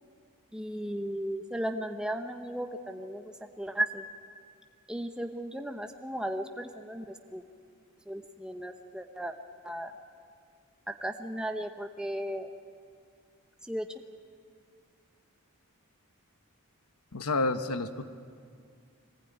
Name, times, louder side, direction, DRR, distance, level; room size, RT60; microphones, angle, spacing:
voice 1, 0.5-3.3 3.6-4.0 4.9-7.5 8.1-9.3 9.6-9.9 11.0-12.5 13.7-13.9, right 1 dB, 5° right, 5 dB, 0.8 m, -35 dB
voice 2, 17.1-18.0, left 2 dB, 85° left, 9 dB, 1.2 m, -29 dB
22.5 x 19.0 x 9.2 m, 2.3 s
head